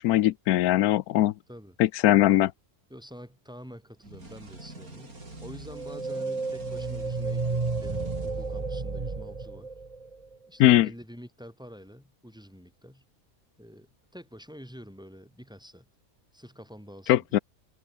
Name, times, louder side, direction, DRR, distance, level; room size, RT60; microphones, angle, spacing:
voice 1, 0.0-1.3 1.8-2.5 10.6-10.9 17.1-17.4, left 14 dB, 90° left, 1.1 m, -20 dB
voice 2, 2.9-9.7 10.5-13.0 13.6-15.9 16.3-17.4, equal, 5° right, 3.8 m, -47 dB
sound 1, 4.0-8.9, right 2 dB, 75° right, 6.2 m, -46 dB
sound 2, 5.7-10.3, right 3 dB, 25° right, 1.4 m, -32 dB
omnidirectional pair, 1.5 m